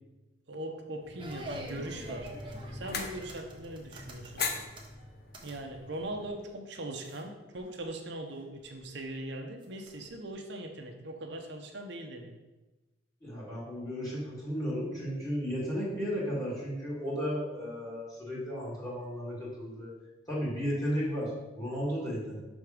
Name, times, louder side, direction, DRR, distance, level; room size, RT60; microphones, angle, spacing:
voice 1, 0.5-2.3 2.7-4.5 5.4-12.3, right 1 dB, 65° right, 3 dB, 0.8 m, -40 dB
sound 1, 1.0-6.4, left 4 dB, 55° left, 0.8 m, -41 dB
sound 2, 1.2-5.6 5.9-6.4 7.0-7.2 7.5-7.9 8.4-9.0 9.6-10.3, equal, 25° right, 0.9 m, -47 dB
voice 2, 13.2-20.0 20.3-22.4, equal, 20° left, -7 dB, 2.1 m, -34 dB
6.3 x 3.5 x 5.0 m, 1.1 s
head